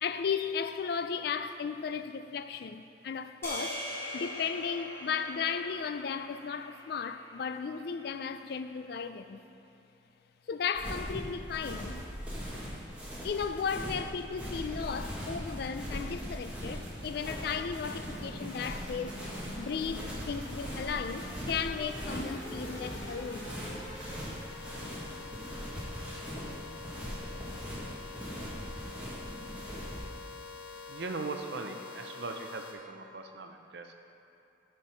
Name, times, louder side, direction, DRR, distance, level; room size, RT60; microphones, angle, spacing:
voice 1, 0.0-3.8 4.1-9.4 10.5-12.0 13.2-19.2 19.6-23.6, left 6 dB, 55° left, 0.3 m, -35 dB
sound 1, 3.4-7.8, equal, 15° left, 1.3 m, -42 dB
sound 2, 10.7-30.0, equal, 5° right, 1.4 m, -40 dB
sound 3, 16.8-32.7, left 3 dB, 80° left, 1.1 m, -46 dB
voice 2, 30.9-33.9, right 3 dB, 60° right, 0.6 m, -39 dB
8.4 x 4.5 x 5.5 m
head